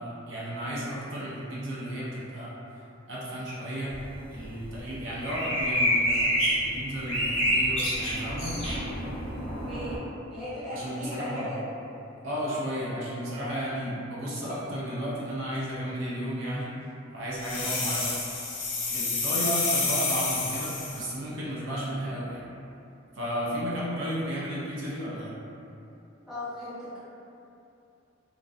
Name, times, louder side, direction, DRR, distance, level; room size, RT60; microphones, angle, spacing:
voice 1, 0.0-2.5 3.1-4.0 4.3-8.5 10.7-11.6 12.2-16.7 17.1-18.1 18.9-22.4 23.1-25.3, equal, 70° right, -7 dB, 0.5 m, -33 dB
sound 1, 3.9-10.0, equal, 30° left, 0.6 m, -28 dB
voice 2, 9.4-10.0 10.3-11.6 26.3-27.0, left 1 dB, ahead, -15 dB, 0.9 m, -38 dB
sound 2, 17.4-21.1, left 3 dB, 75° left, 0.5 m, -29 dB
2.5 x 2.1 x 2.3 m, 2.7 s
head